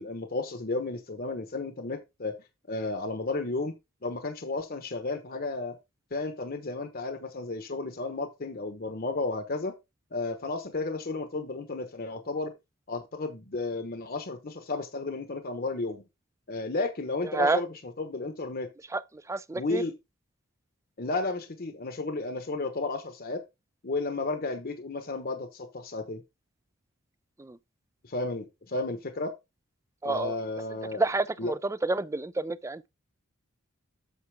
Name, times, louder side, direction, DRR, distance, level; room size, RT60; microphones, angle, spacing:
voice 1, 0.0-2.4 2.7-3.7 4.0-5.7 6.1-9.7 10.1-12.5 12.9-16.0 16.5-18.7 19.5-19.9 21.0-23.4 23.8-26.2 28.0-29.3 30.0-31.0 31.4-31.5, left 3 dB, 45° left, 1.1 m, -33 dB
voice 2, 19.3-19.8 27.4-27.6 30.0-30.3 30.9-32.9, right 3 dB, 15° right, 0.4 m, -29 dB
8.2 x 6.8 x 3.5 m
head